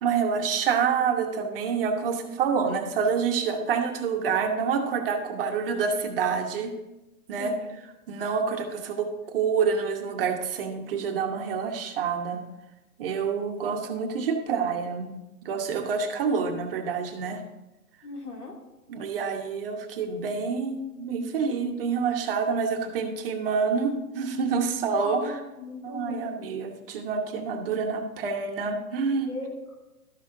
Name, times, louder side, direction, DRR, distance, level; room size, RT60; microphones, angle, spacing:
voice 1, 0.0-6.7 7.3-12.4 13.0-15.2 15.4-17.4 18.9-25.4 25.8-29.3, right 5 dB, 40° right, 4 dB, 1.1 m, -27 dB
voice 2, 18.0-18.5 25.0-26.3 29.0-29.8, left 3 dB, 85° left, 1 dB, 2.5 m, -38 dB
12.5 x 6.3 x 3.8 m, 1.0 s
hypercardioid pair, 150°, 45 cm